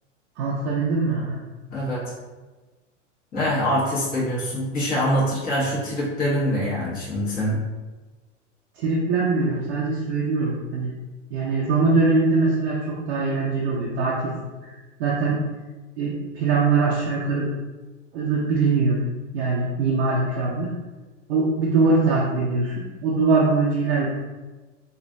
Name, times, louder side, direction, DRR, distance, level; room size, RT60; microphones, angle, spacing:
voice 1, 0.4-1.4 8.8-10.9 11.3-14.3 14.6-15.4 16.0-17.5 18.1-19.0 19.3-20.7 21.3-24.1, right 3 dB, 55° right, -4 dB, 0.6 m, -22 dB
voice 2, 1.7-2.0 3.3-7.6, equal, 25° left, -7 dB, 1.3 m, -24 dB
3.1 x 2.4 x 2.6 m, 1.2 s
hypercardioid pair, 100°, 38 cm